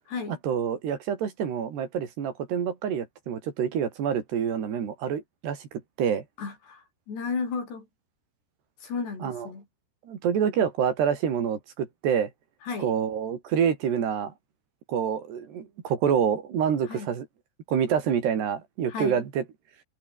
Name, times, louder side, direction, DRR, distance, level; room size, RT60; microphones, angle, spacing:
voice 1, 0.4-6.3 9.2-9.5 10.1-12.3 12.8-14.3 14.9-17.3 17.7-19.4, right 8 dB, 80° right, 5.6 m, -27 dB
voice 2, 6.4-7.9 8.8-9.7 12.6-12.9 16.9-17.1 18.9-19.2, left 5 dB, 85° left, 8.9 m, -33 dB
omnidirectional pair, 4.7 m